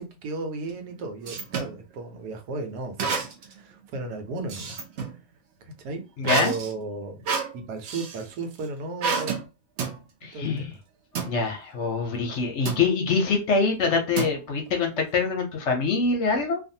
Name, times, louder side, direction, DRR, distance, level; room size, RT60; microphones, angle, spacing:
voice 1, 0.0-4.8 5.8-7.2 7.5-9.4 10.3-10.8, right 3 dB, 85° right, 1.3 m, -34 dB
sound 1, 0.7-1.8 3.0-3.6 3.9-5.2 6.2-8.2 9.0-9.4 9.8-10.0 11.1-11.4 12.7-12.9 14.2-14.7, right 5 dB, 65° right, 0.7 m, -29 dB
voice 2, 6.2-6.6 10.2-10.7 11.3-16.6, left 4 dB, 60° left, 0.8 m, -24 dB
2.5 x 2.5 x 2.6 m
omnidirectional pair, 1.6 m